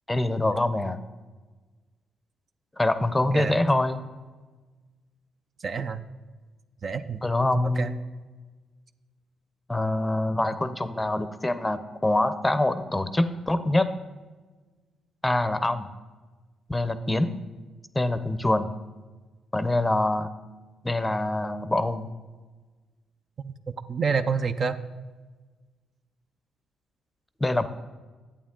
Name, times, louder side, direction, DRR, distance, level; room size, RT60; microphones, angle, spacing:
voice 1, 0.1-1.0 2.8-4.0 7.2-8.0 9.7-13.9 15.2-15.9 16.7-17.4 17.9-18.7 19.5-20.3 20.8-22.1 27.4-27.7, left 1 dB, 10° left, 11 dB, 0.6 m, -25 dB
voice 2, 5.6-6.0 6.8-7.2 7.8-7.9 23.4-24.8, right 5 dB, 45° right, 10 dB, 0.5 m, -28 dB
11.5 x 8.6 x 3.7 m, 1.3 s
cardioid pair, 90°, 0 cm